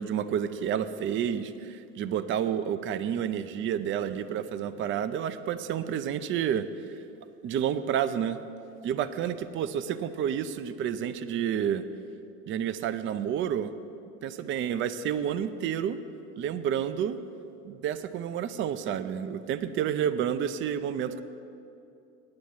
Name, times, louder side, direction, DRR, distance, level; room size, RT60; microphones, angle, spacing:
voice 1, 0.0-6.7 7.4-8.4 8.8-11.8 12.5-13.7 14.2-16.0 16.4-17.2 17.6-21.2, right 9 dB, 30° right, 13 dB, 0.5 m, -30 dB
9.7 x 8.2 x 8.8 m, 2.6 s
supercardioid pair, 110°, 38 cm